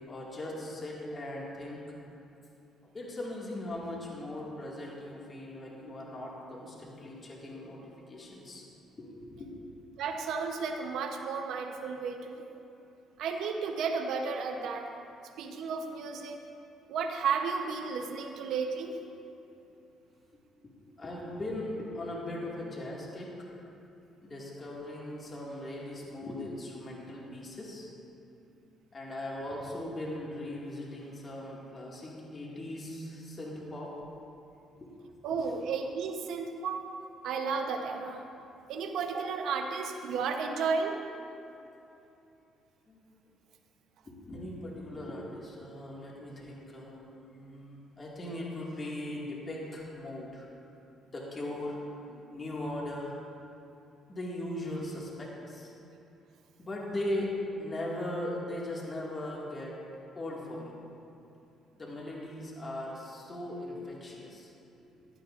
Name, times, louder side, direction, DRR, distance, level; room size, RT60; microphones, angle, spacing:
voice 1, 0.1-2.0 2.9-8.6 9.0-9.5 20.6-20.7 21.0-23.5 24.2-27.9 28.9-34.0 34.8-34.9 35.4-35.5 42.9-43.0 44.1-50.5 51.0-53.2 54.1-55.7 56.6-59.8 60.2-60.7 61.8-64.5 64.8-64.9, left 1 dB, 30° left, -4 dB, 2.1 m, -39 dB
voice 2, 10.0-12.5 13.2-14.9 15.4-16.4 16.9-19.0 35.2-36.8 37.2-38.2 38.7-41.0, right 5 dB, 75° right, 4 dB, 0.9 m, -33 dB
15.0 x 11.0 x 2.6 m, 2.8 s
cardioid pair, 100°, 0 cm